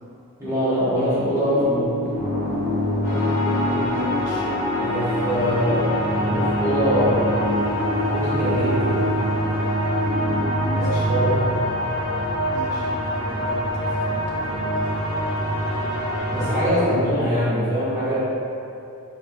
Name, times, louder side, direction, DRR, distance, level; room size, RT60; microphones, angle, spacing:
voice 1, 0.4-2.1 4.8-5.9 6.1-7.3 8.1-9.0 10.8-11.6 16.3-18.2, equal, 15° right, -12 dB, 0.9 m, -23 dB
sound 1, 1.4-10.5, left 2 dB, 45° right, 0.4 m, -28 dB
sound 2, 2.1-17.1, right 1 dB, 25° left, 0.9 m, -28 dB
sound 3, 3.0-16.7, equal, 50° left, 1.2 m, -27 dB
voice 2, 3.6-4.5 10.6-11.1 12.5-14.9 16.8-17.0, left 1 dB, 90° left, -3 dB, 0.6 m, -35 dB
3.2 x 2.7 x 2.2 m, 2.7 s
head